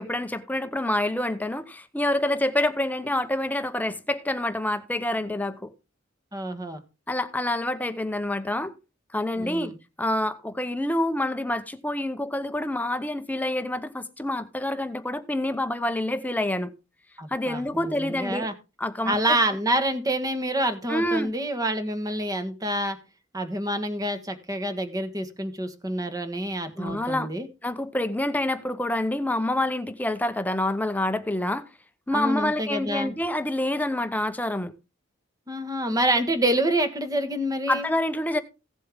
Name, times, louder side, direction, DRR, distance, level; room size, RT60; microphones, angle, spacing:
voice 1, 0.0-5.7 7.1-8.7 9.1-9.7 10.0-16.7 17.3-18.5 18.8-19.4 20.9-21.3 26.8-27.3 27.6-31.6 32.1-34.7 37.7-38.4, left 1 dB, 10° left, 0.8 m, -27 dB
voice 2, 6.3-6.8 9.4-9.7 17.2-18.5 19.0-23.0 23.3-27.5 32.1-33.1 35.5-37.9, right 1 dB, 20° right, 1.4 m, -27 dB
16.0 x 7.6 x 3.5 m
head